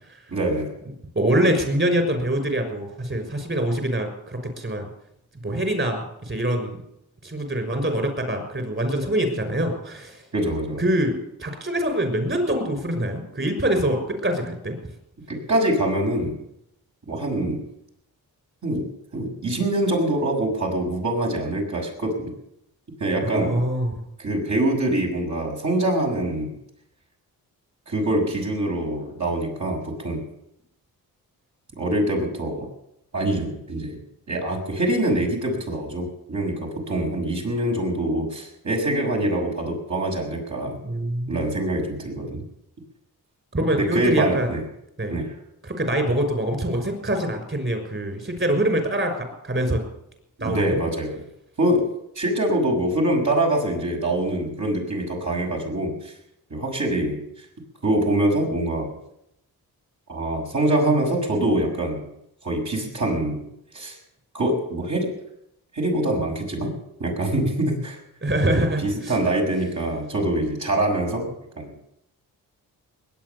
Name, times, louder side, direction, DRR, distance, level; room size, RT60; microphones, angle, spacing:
voice 1, 0.3-0.7 10.3-10.8 15.3-16.4 17.1-17.6 18.6-18.9 19.1-22.3 23.0-23.6 24.2-26.5 27.9-30.2 31.8-32.7 33.1-34.0 34.3-36.5 36.9-40.8 41.3-42.4 43.7-44.6 45.1-45.3 50.4-51.2 51.6-56.1 56.5-57.2 57.8-58.9 60.1-62.1 62.4-63.4 63.7-64.0 64.3-65.1 65.7-66.7 67.0-68.0 68.4-71.7, right 1 dB, 50° right, 0 dB, 6.5 m, -24 dB
voice 2, 1.1-4.9 5.4-6.8 7.2-10.2 10.8-14.8 23.2-24.0 40.8-41.4 43.5-44.5 45.0-45.2 45.6-49.8 50.4-50.8 68.2-69.1, right 1 dB, 30° right, 6 dB, 6.1 m, -24 dB
20.5 x 9.2 x 7.0 m, 0.79 s
cardioid pair, 60°, 38 cm